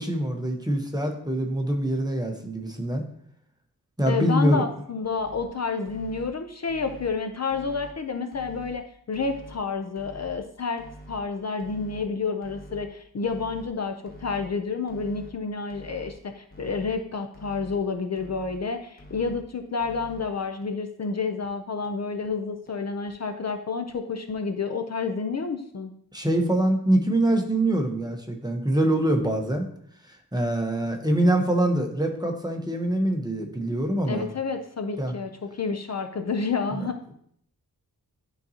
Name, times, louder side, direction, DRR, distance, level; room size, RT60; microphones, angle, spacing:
voice 1, 0.0-3.0 4.0-4.6 26.1-29.6 30.3-34.3 35.0-35.1 36.7-36.8, right 1 dB, 10° right, 3 dB, 0.9 m, -24 dB
voice 2, 4.1-25.9 34.1-37.1, left 4 dB, 45° left, 6 dB, 0.5 m, -30 dB
sound 1, 5.0-5.5 5.8-6.3 6.7-7.1 7.5-7.9 8.3-8.7 9.1-9.6 9.9-10.4 10.8-11.2 11.6-12.0 12.4-12.8 13.2-13.7 14.1-14.5 14.9-15.3 15.7-16.1 16.5-16.9 17.3-17.8 18.2-18.6 19.0-19.4 19.8-20.2 20.6-20.7 21.0-21.1 21.4-21.5 21.8-21.9 22.2-22.3 22.7-22.8 23.1-23.2 23.5-23.6 23.9-24.0 24.3-24.4, equal, 25° left, 1.1 m, -46 dB
11.5 x 4.0 x 2.8 m, 0.67 s
wide cardioid pair, 125°, 37 cm